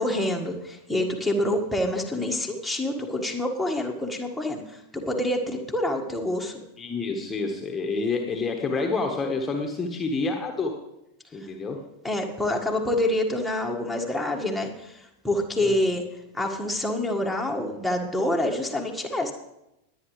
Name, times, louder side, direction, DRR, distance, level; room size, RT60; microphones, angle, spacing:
voice 1, 0.0-6.6 12.0-16.0 16.3-19.3, left 1 dB, ahead, -1 dB, 1.7 m, -27 dB
voice 2, 6.8-10.8 11.3-11.8 15.6-15.7, left 3 dB, 15° left, 3 dB, 1.4 m, -28 dB
21.0 x 9.1 x 3.3 m, 0.88 s
figure-of-eight pair, 90°, 0 cm